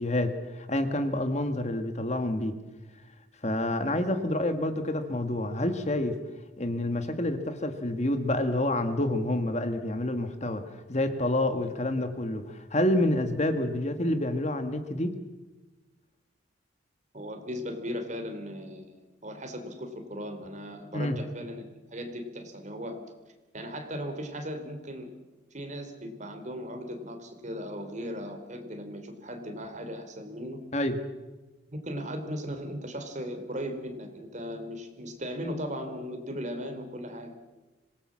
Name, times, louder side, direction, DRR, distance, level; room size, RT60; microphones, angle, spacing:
voice 1, 0.0-2.6 3.4-6.2 6.6-10.6 10.9-15.1 20.9-21.2 30.7-31.0, left 1 dB, 35° left, 8 dB, 1.6 m, -28 dB
voice 2, 17.1-23.0 23.5-25.1 25.5-30.6 31.7-37.3, equal, 40° right, 5 dB, 3.2 m, -37 dB
25.5 x 18.5 x 7.5 m, 1.2 s
head